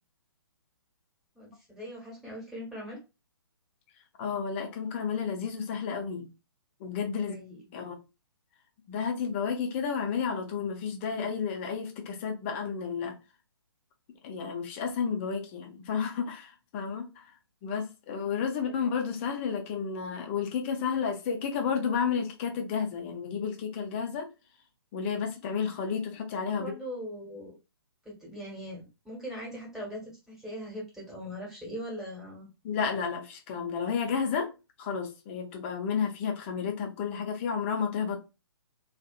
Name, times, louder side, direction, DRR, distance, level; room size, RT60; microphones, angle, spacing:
voice 1, 1.3-3.0 7.1-7.8 18.5-18.9 26.5-27.5 28.0-32.5, equal, 5° right, 1.3 m, -41 dB
voice 2, 4.2-6.3 6.8-7.4 7.7-8.0 8.9-13.1 14.2-17.2 17.6-24.3 24.9-26.8 32.6-34.5 34.8-38.2, left 6 dB, 30° left, 0.7 m, -31 dB
2.7 x 2.5 x 2.4 m
figure-of-eight pair, 130°, 13 cm